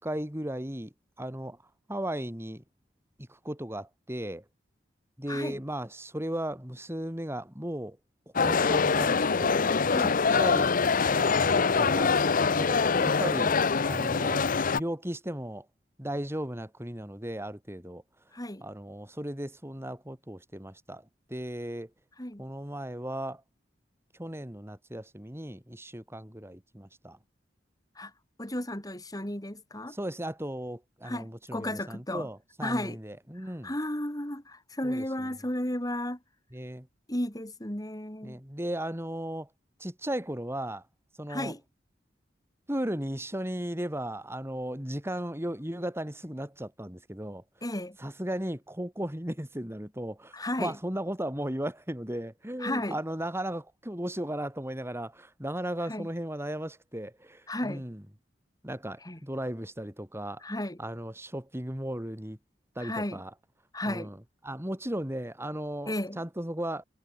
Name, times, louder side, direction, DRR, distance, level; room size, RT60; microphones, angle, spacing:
voice 1, 0.0-1.6 1.9-2.6 3.2-4.4 5.2-8.0 8.3-9.6 10.0-10.7 11.1-11.4 11.7-12.1 12.6-15.7 16.0-18.0 18.6-21.9 22.4-23.4 24.2-27.2 29.9-33.7 34.8-35.3 36.5-36.9 38.2-39.5 39.8-40.8 41.2-41.5 42.7-47.4 48.0-58.0 58.6-60.4 60.8-62.4 62.7-63.3 63.9-64.2 64.4-66.8, right 1 dB, 15° right, 4.6 m, -36 dB
voice 2, 5.3-5.6 9.9-10.2 18.3-18.7 22.2-22.4 27.9-28.1 28.4-30.0 31.0-32.3 32.6-33.0 33.4-36.2 37.1-38.4 41.3-41.6 47.6-48.0 50.3-50.8 52.6-53.0 55.9-56.1 57.5-57.8 59.0-59.2 60.4-60.8 62.8-63.2 63.7-64.1 65.9-66.2, left 1 dB, 20° left, 5.0 m, -34 dB
sound 1, 8.3-14.8, left 5 dB, 50° left, 0.8 m, -24 dB
head